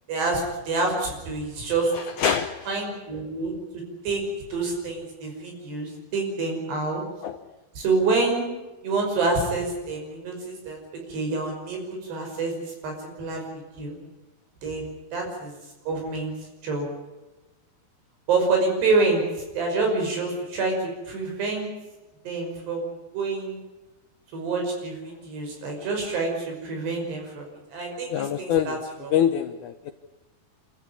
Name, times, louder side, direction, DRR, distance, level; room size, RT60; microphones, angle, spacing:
voice 1, 0.1-1.9 2.7-3.5 4.0-4.2 4.5-7.0 7.8-8.5 8.8-10.8 11.1-12.6 12.8-12.9 13.2-13.4 13.7-14.0 14.6-15.5 15.9-16.3 16.6-16.9 18.3-19.2 19.5-21.7 22.3-22.9 23.1-23.6 24.3-27.5 27.7-29.1, right 3 dB, 90° right, 1 dB, 7.7 m, -27 dB
voice 2, 1.9-2.8 7.2-7.4 28.1-28.8 29.1-29.9, left 9 dB, 75° left, 8 dB, 1.8 m, -25 dB
27.0 x 14.0 x 9.6 m, 1.1 s
omnidirectional pair, 4.6 m